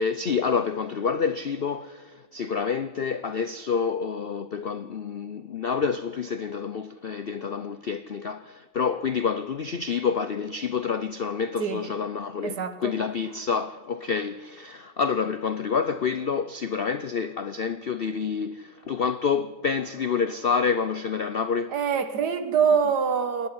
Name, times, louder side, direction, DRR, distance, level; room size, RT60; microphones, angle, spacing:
voice 1, 0.0-21.7, left 6 dB, 60° left, 0.6 m, -28 dB
voice 2, 12.4-13.0 21.7-23.5, right 6 dB, 65° right, 1.9 m, -24 dB
27.0 x 11.0 x 9.6 m
omnidirectional pair, 1.9 m